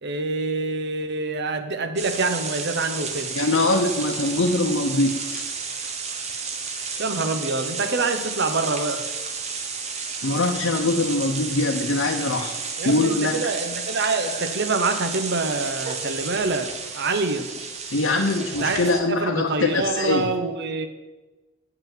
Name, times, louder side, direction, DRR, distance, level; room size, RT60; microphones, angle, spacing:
voice 1, 0.0-3.3 7.0-9.0 12.8-17.5 18.6-20.9, right 3 dB, 60° right, 8 dB, 0.8 m, -26 dB
sound 1, 2.0-19.0, right 5 dB, 35° right, 1.0 m, -32 dB
voice 2, 3.3-5.4 10.2-12.6 12.8-13.3 17.9-20.3, left 2 dB, 75° left, 1 dB, 0.8 m, -23 dB
8.0 x 5.7 x 7.3 m, 1.2 s
head